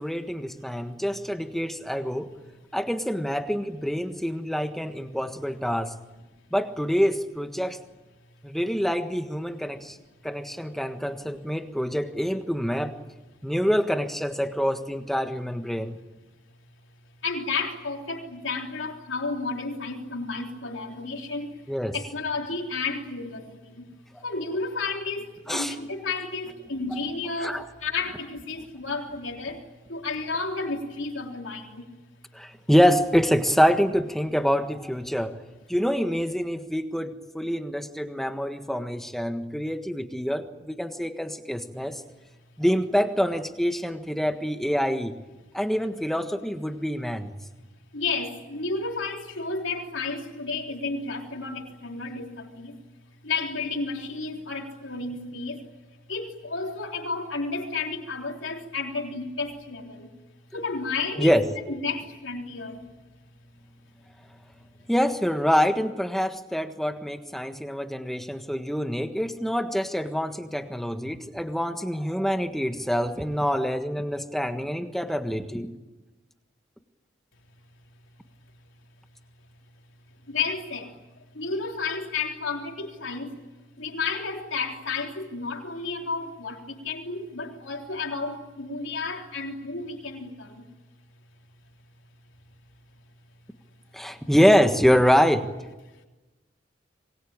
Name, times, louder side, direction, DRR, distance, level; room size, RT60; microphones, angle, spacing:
voice 1, 0.0-2.3 2.7-5.9 6.5-7.8 8.4-10.0 10.2-12.9 13.4-16.0 21.7-21.9 25.5-25.7 26.9-27.0 27.4-27.6 32.3-35.4 35.7-42.0 42.6-45.1 45.5-47.3 61.2-61.5 64.9-75.7 93.9-95.5, equal, ahead, 7 dB, 1.5 m, -25 dB
voice 2, 17.2-21.5 21.9-23.9 24.2-31.9 47.9-52.8 53.2-55.7 56.1-60.1 60.5-62.9 80.3-83.4 83.8-90.7, left 4 dB, 90° left, 2 dB, 3.6 m, -32 dB
26.5 x 22.0 x 8.9 m, 1.1 s
head